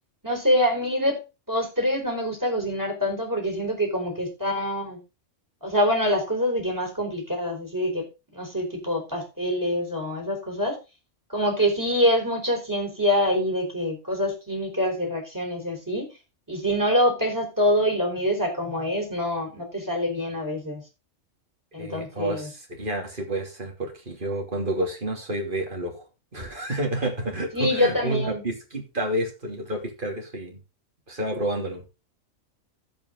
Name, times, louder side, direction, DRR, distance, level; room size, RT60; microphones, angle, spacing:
voice 1, 0.2-1.2 1.5-5.0 5.6-8.1 8.3-10.8 11.3-16.1 16.5-20.8 21.7-22.5 27.5-28.4, equal, 15° right, 2 dB, 4.5 m, -25 dB
voice 2, 21.8-26.0 26.3-30.6 31.1-31.8, right 1 dB, 40° right, 2 dB, 3.1 m, -30 dB
16.0 x 5.7 x 3.9 m, 0.27 s
omnidirectional pair, 1.4 m